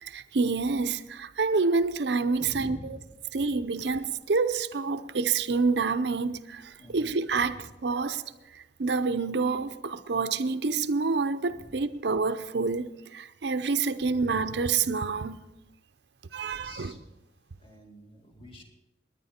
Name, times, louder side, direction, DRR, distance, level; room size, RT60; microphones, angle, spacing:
voice 1, 0.0-2.8 3.3-8.2 8.5-15.5 16.3-16.9, right 4 dB, 65° right, 0.6 m, -28 dB
voice 2, 2.4-3.4 6.8-7.7 11.5-11.8 14.0-14.1 16.3-17.1 17.6-18.6, equal, 30° left, 2.3 m, -47 dB
20.5 x 9.9 x 4.3 m
head